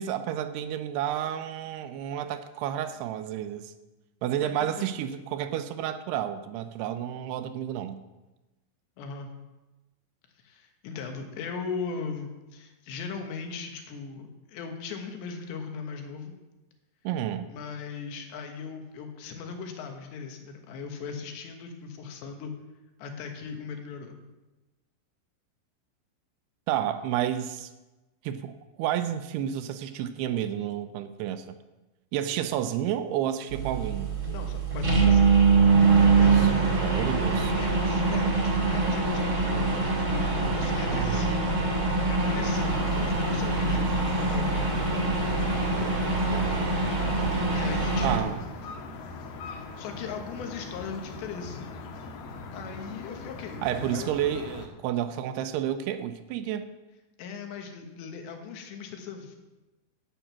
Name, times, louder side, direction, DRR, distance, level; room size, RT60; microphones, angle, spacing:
voice 1, 0.0-3.7 4.2-8.0 17.0-17.5 26.7-27.7 28.2-31.6 32.1-34.1 35.9-37.6 40.9-41.2 45.8-46.8 48.0-48.4 53.6-56.7, right 10 dB, 80° right, 10 dB, 2.6 m, -31 dB
voice 2, 4.4-4.9 9.0-9.3 10.4-16.4 17.5-22.5 23.0-24.2 34.3-35.3 35.8-36.9 37.6-41.5 42.1-44.7 45.8-46.0 47.5-48.4 49.5-51.6 52.5-54.1 57.2-59.4, left 5 dB, 85° left, 4 dB, 3.6 m, -38 dB
sound 1, 33.5-48.2, right 4 dB, 40° right, 1.4 m, -24 dB
sound 2, 42.1-54.7, left 3 dB, 65° left, 2.6 m, -41 dB
11.0 x 9.1 x 5.8 m, 1.1 s
omnidirectional pair, 5.0 m